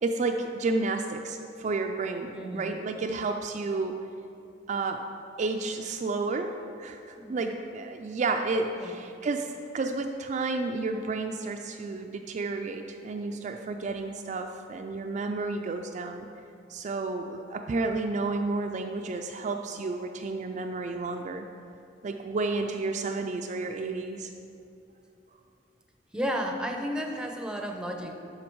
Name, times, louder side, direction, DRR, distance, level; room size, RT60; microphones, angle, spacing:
voice 1, 0.0-4.1 4.7-5.0 5.4-6.5 6.8-16.3 16.7-21.5 22.0-24.3, right 3 dB, 40° right, 4 dB, 0.3 m, -31 dB
voice 2, 2.3-2.8 7.2-7.4 8.7-8.9 26.1-28.1, equal, 5° right, 3 dB, 0.6 m, -33 dB
11.5 x 3.9 x 4.5 m, 2.6 s
head